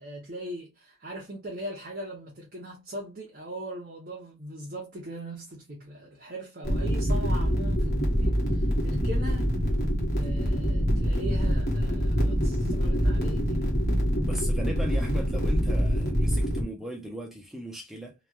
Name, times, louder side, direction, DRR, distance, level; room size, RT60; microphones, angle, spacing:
voice 1, 0.0-9.7 10.1-13.8, right 1 dB, 40° right, 0.7 m, -40 dB
sound 1, 6.6-16.6, equal, 45° left, 1.0 m, -25 dB
voice 2, 14.2-18.1, equal, ahead, 0.6 m, -37 dB
3.0 x 2.3 x 2.2 m
head